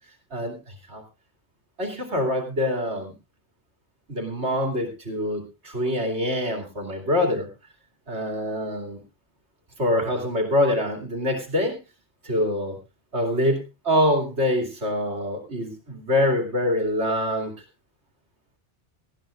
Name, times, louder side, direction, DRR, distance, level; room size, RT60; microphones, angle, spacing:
voice 1, 0.3-1.0 1.8-3.1 4.1-7.5 8.1-9.0 9.8-11.7 12.2-12.8 13.1-17.5, left 1 dB, 70° right, 3 dB, 3.0 m, -25 dB
19.0 x 14.0 x 2.5 m, 0.27 s
omnidirectional pair, 1.2 m